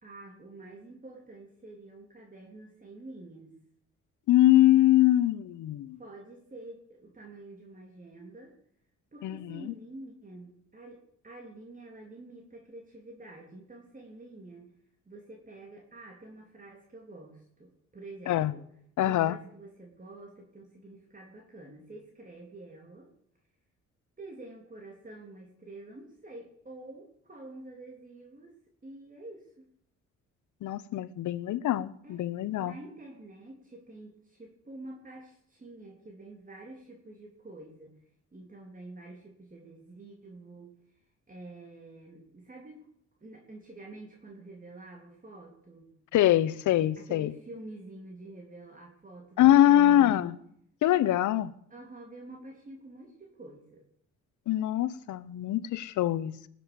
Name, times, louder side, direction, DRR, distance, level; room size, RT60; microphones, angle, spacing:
voice 1, 0.0-3.6 6.0-8.5 9.1-11.0 11.2-14.7 15.1-18.7 19.0-23.1 24.2-29.7 32.0-32.3 32.6-38.0 38.3-40.7 41.3-42.9 43.2-45.9 47.0-50.3 51.7-53.8, right 2 dB, 25° right, 3.4 m, -48 dB
voice 2, 4.3-6.0 9.2-9.7 18.3-18.5 19.0-19.4 30.6-32.7 46.1-47.3 49.4-50.3 50.8-51.5 54.5-56.5, left 13 dB, 75° left, 0.9 m, -23 dB
19.5 x 7.9 x 7.0 m
cardioid pair, 90°, 30 cm